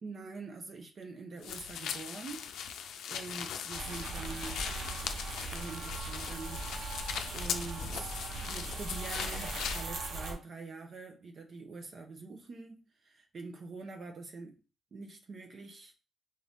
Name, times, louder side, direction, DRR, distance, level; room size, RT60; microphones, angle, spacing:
voice 1, 0.0-2.5 3.1-4.6 5.4-6.7 7.3-14.6 14.9-15.9, right 3 dB, 50° right, 0.7 m, -45 dB
sound 1, 1.4-9.9, left 8 dB, 85° left, 0.4 m, -40 dB
sound 2, 3.7-10.3, right 3 dB, 80° right, 0.9 m, -39 dB
4.0 x 2.6 x 3.4 m
cardioid pair, 100°, 0 cm